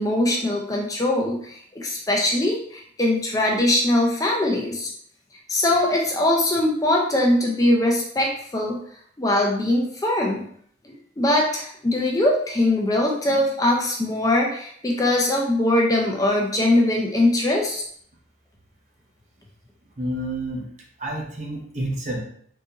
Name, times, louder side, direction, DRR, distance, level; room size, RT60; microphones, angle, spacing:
voice 1, 0.0-4.9 5.5-8.8 9.2-10.5 10.8-17.9, left 1 dB, 20° left, -1 dB, 0.4 m, -21 dB
voice 2, 20.0-20.7 21.0-22.2, right 1 dB, 40° right, -1 dB, 0.7 m, -29 dB
3.7 x 2.5 x 2.8 m, 0.62 s
head